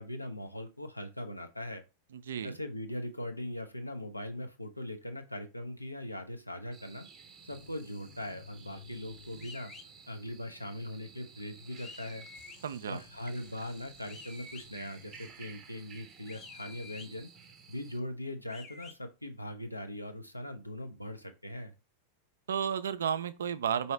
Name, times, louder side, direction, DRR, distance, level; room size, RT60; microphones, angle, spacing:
voice 1, 0.0-1.8 2.4-7.1 7.4-9.7 10.1-12.3 12.9-17.3 17.7-21.7, left 1 dB, 85° left, 0.6 m, -40 dB
voice 2, 2.1-2.6 12.6-13.0 22.5-23.9, right 8 dB, 65° right, 0.4 m, -32 dB
sound 1, 6.7-18.0, right 6 dB, 25° right, 0.7 m, -54 dB
sound 2, 7.5-10.3 12.3-15.8, left 6 dB, 55° left, 0.8 m, -57 dB
sound 3, 9.4-9.9 11.8-12.6 14.1-14.7 16.3-17.1 18.5-19.0, left 4 dB, 25° left, 0.6 m, -49 dB
4.7 x 2.7 x 3.2 m
figure-of-eight pair, 90°, 0 cm